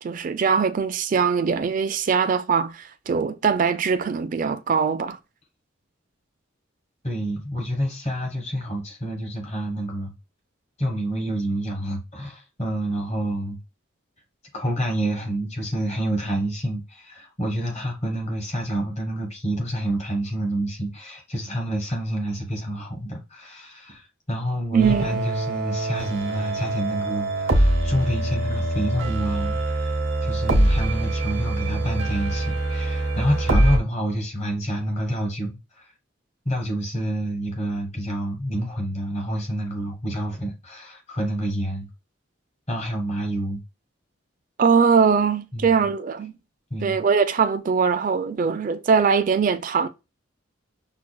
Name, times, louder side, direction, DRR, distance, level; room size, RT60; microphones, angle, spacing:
voice 1, 0.0-5.2 24.7-25.2 44.6-46.3 46.8-49.9, right 6 dB, 40° right, 0.3 m, -21 dB
voice 2, 7.0-10.1 10.8-13.6 14.5-29.9 30.2-35.8 36.4-41.9 42.7-43.6 45.5-45.8 46.7-47.0, right 1 dB, 35° left, 1.2 m, -28 dB
sound 1, 24.8-33.8, right 1 dB, 80° right, 0.8 m, -24 dB
5.8 x 2.3 x 2.2 m
head